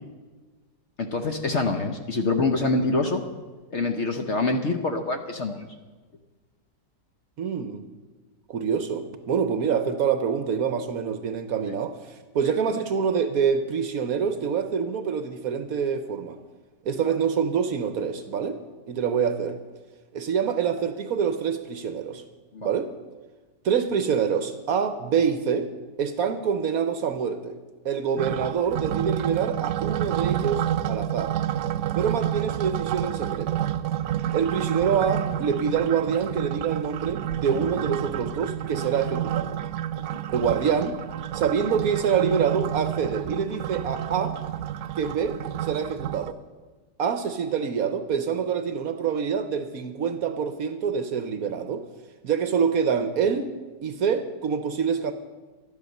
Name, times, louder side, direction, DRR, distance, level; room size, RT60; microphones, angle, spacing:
voice 1, 1.0-3.2 3.7-5.7 12.4-12.5 17.0-17.1 22.5-22.7 40.1-40.2, left 3 dB, 50° left, 5 dB, 1.0 m, -26 dB
voice 2, 7.4-7.8 8.5-16.4 16.8-18.6 18.9-19.6 20.1-22.2 22.6-22.9 23.6-25.7 26.0-27.6 27.8-31.4 31.9-33.6 34.3-39.6 40.3-41.0 41.3-44.4 45.0-46.4 47.0-51.9 52.2-53.5 53.8-55.1, right 7 dB, 60° right, 9 dB, 1.1 m, -26 dB
sound 1, 28.2-46.3, right 11 dB, 85° right, 0.6 m, -29 dB
12.0 x 11.0 x 6.5 m, 1.3 s
omnidirectional pair, 1.9 m